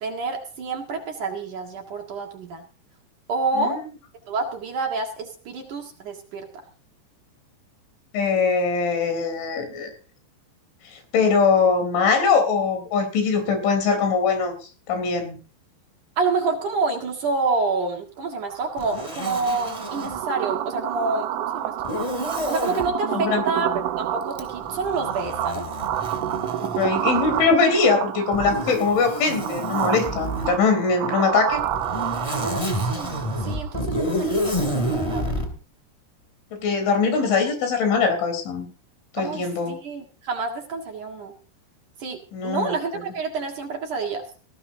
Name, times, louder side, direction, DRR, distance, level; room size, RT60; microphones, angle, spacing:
voice 1, 0.0-2.6 3.3-3.8 4.3-6.5 16.2-21.9 22.5-23.7 24.0-25.6 32.3-35.3 39.2-41.3 42.0-44.2, right 3 dB, 55° right, 2 dB, 2.6 m, -28 dB
voice 2, 8.1-9.9 10.9-14.5 14.9-15.4 23.1-23.4 26.6-31.6 36.5-38.7 39.1-39.8 42.3-42.7, left 5 dB, 80° left, 7 dB, 6.3 m, -22 dB
sound 1, 18.4-33.8, right 11 dB, 90° right, 3.5 m, -29 dB
Zipper (clothing), 18.8-20.2 21.8-22.9 24.3-27.5 28.3-30.6 31.5-35.5, equal, 10° left, 1.9 m, -29 dB
19.0 x 16.0 x 2.7 m, 0.36 s
omnidirectional pair, 5.4 m